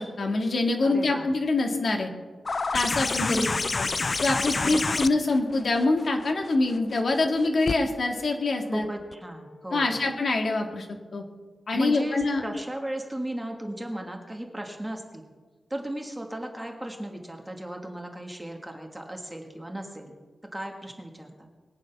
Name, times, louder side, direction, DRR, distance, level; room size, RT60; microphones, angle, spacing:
voice 1, 0.0-2.1 2.7-3.5 3.8-3.9 4.2-8.9 9.7-10.9 11.1-11.2 11.7-12.4, left 2 dB, 50° left, 2 dB, 2.0 m, -25 dB
voice 2, 0.8-1.3 3.2-3.6 4.5-5.0 8.7-10.1 11.7-15.2 15.7-20.2 20.5-21.5, right 1 dB, 10° right, 2 dB, 1.7 m, -35 dB
sound 1, 2.5-7.8 9.1-9.2, left 3 dB, 35° left, 0.4 m, -29 dB
21.5 x 9.2 x 6.0 m, 1.4 s
wide cardioid pair, 165°, 0 cm